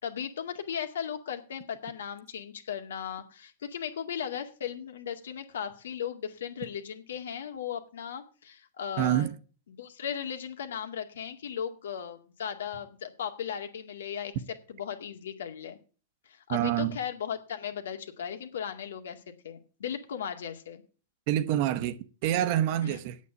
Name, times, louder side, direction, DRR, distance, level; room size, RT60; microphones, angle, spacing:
voice 1, 0.0-9.3 9.8-14.3 14.7-15.8 16.3-20.8 22.8-23.0, left 8 dB, 85° left, 2.1 m, -37 dB
voice 2, 9.0-9.3 16.5-17.0 21.3-23.2, right 12 dB, 55° right, 1.0 m, -27 dB
8.4 x 8.4 x 8.2 m
hypercardioid pair, 130°, 0 cm